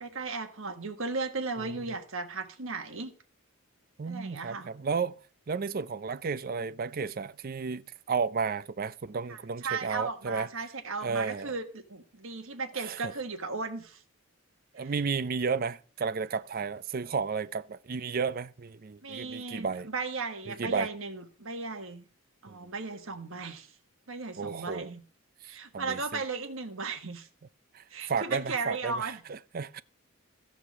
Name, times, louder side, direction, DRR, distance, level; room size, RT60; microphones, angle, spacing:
voice 1, 0.0-3.1 4.1-4.7 9.3-14.0 14.8-14.9 19.0-22.0 22.4-23.7 24.1-25.0 25.4-27.3 27.9-29.2, right 4 dB, 65° right, 1.5 m, -36 dB
voice 2, 1.6-1.9 4.0-5.2 5.5-10.5 11.0-11.5 12.7-13.1 14.7-19.9 20.5-20.9 22.5-22.7 24.4-24.9 25.4-26.2 27.7-29.8, right 5 dB, 40° right, 0.4 m, -33 dB
14.0 x 5.1 x 7.3 m
head